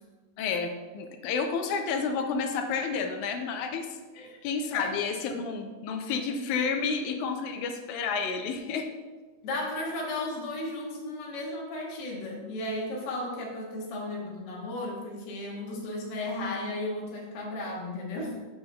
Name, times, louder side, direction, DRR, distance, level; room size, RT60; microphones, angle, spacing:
voice 1, 0.4-8.9, left 5 dB, 85° left, 5 dB, 2.0 m, -30 dB
voice 2, 9.4-18.4, left 1 dB, 60° left, -2 dB, 1.2 m, -34 dB
7.4 x 5.6 x 2.2 m, 1.3 s
omnidirectional pair, 3.4 m